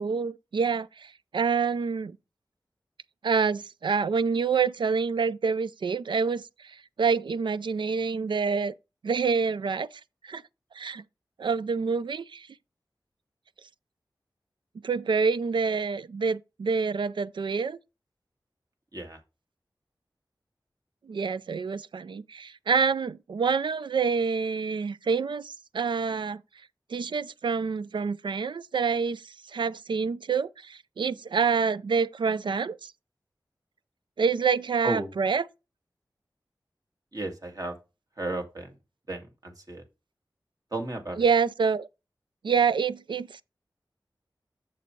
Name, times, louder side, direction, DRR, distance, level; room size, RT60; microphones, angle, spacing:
voice 1, 0.0-2.2 3.2-8.7 9.0-9.9 10.2-10.4 10.7-11.0 11.4-12.5 14.8-17.8 21.1-26.4 26.9-32.9 34.2-35.4 41.2-41.9 42.4-43.4, right 5 dB, 80° right, 0.4 m, -27 dB
voice 2, 37.1-37.8 38.2-38.7 39.1-39.8 40.7-41.2, right 2 dB, 50° right, 2.0 m, -33 dB
7.1 x 6.7 x 3.1 m
wide cardioid pair, 65°, 8 cm